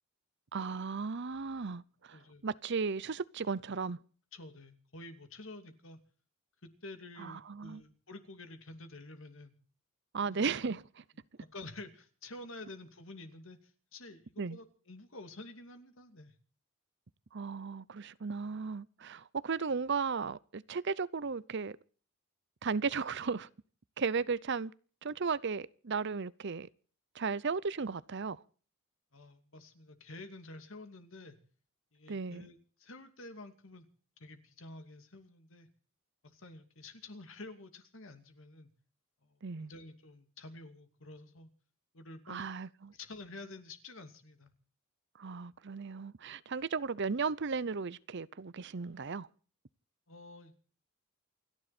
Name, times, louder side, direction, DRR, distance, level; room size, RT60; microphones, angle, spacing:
voice 1, 0.5-4.0 7.2-7.8 10.1-10.8 14.4-14.6 17.3-21.8 22.6-23.5 24.0-24.7 25.0-26.7 27.1-28.4 32.1-32.5 39.4-39.7 42.3-42.9 45.2-49.3, right 5 dB, 55° right, 0.7 m, -35 dB
voice 2, 2.1-2.5 4.3-6.0 6.6-9.5 10.2-10.7 11.4-16.3 29.1-31.4 31.9-33.9 34.2-35.7 36.2-38.7 39.2-41.5 41.9-42.5 42.9-44.5 50.1-50.5, left 2 dB, 65° left, 2.7 m, -50 dB
28.5 x 10.5 x 4.3 m
head